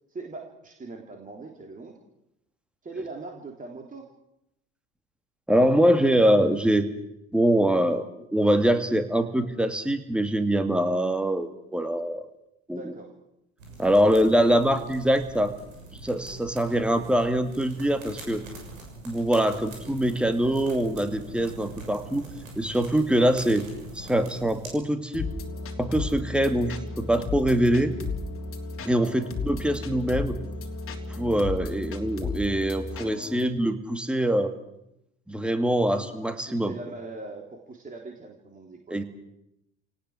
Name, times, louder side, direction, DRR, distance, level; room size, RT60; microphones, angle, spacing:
voice 1, 0.1-1.9 2.8-4.1 12.7-13.1 14.0-14.7 25.5-25.8 29.0-29.1 35.8-39.0, right 3 dB, 20° right, 1 dB, 3.4 m, -41 dB
voice 2, 5.5-6.9 7.3-12.3 12.7-12.9 13.8-15.5 16.0-18.4 19.0-22.3 22.6-23.6 23.9-25.3 25.8-27.9 28.8-30.3 31.1-34.5 35.3-36.7 38.9-39.0, right 1 dB, 5° right, 8 dB, 2.3 m, -23 dB
sound 1, 13.6-24.7, right 2 dB, 75° right, 6.7 m, -43 dB
sound 2, 25.1-33.5, left 3 dB, 30° left, 3.2 m, -34 dB
29.0 x 18.5 x 6.4 m, 0.83 s
figure-of-eight pair, 75°, 41 cm